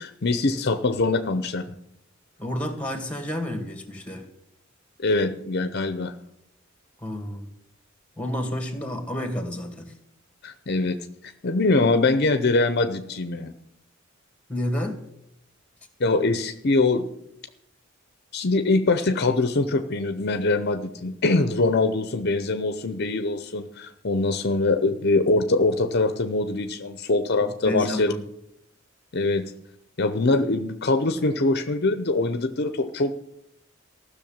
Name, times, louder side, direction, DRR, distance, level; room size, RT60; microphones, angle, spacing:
voice 1, 0.0-1.7 5.0-6.1 10.4-11.0 11.4-13.5 16.0-17.1 18.3-28.1 29.1-29.5 30.0-33.1, left 2 dB, 55° left, 9 dB, 0.8 m, -23 dB
voice 2, 2.4-4.2 7.0-7.5 8.2-9.9 14.5-15.0 27.4-28.2, left 1 dB, 5° left, 5 dB, 2.2 m, -30 dB
15.0 x 6.5 x 8.8 m, 0.78 s
head